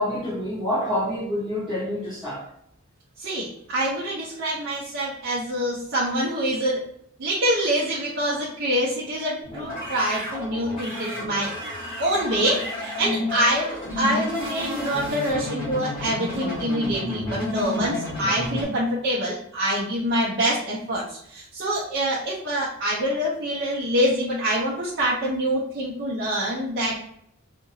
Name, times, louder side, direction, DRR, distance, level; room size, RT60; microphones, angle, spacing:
voice 1, 0.0-2.5, left 1 dB, 5° right, -13 dB, 0.9 m, -27 dB
voice 2, 3.2-6.9 7.2-11.5 12.0-27.1, equal, 55° right, -7 dB, 0.6 m, -25 dB
sound 1, 9.4-18.6, left 1 dB, 25° left, 1.5 m, -31 dB
2.8 x 2.5 x 2.6 m, 0.71 s
head